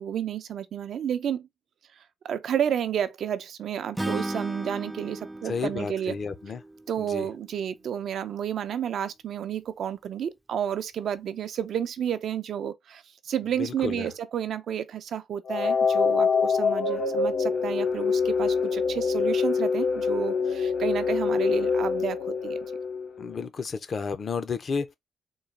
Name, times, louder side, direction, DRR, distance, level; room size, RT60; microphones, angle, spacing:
voice 1, 0.0-1.5 2.2-6.1 6.9-22.6, right 9 dB, 75° right, 0.5 m, -31 dB
Acoustic guitar / Strum, 4.0-7.2, right 1 dB, 10° right, 0.4 m, -35 dB
voice 2, 5.4-6.6 7.0-7.3 13.6-14.1 23.2-24.9, left 5 dB, 50° left, 0.6 m, -32 dB
sound 1, 15.5-23.4, left 5 dB, 75° left, 0.9 m, -25 dB
3.9 x 2.4 x 3.3 m
cardioid pair, 85°, 0 cm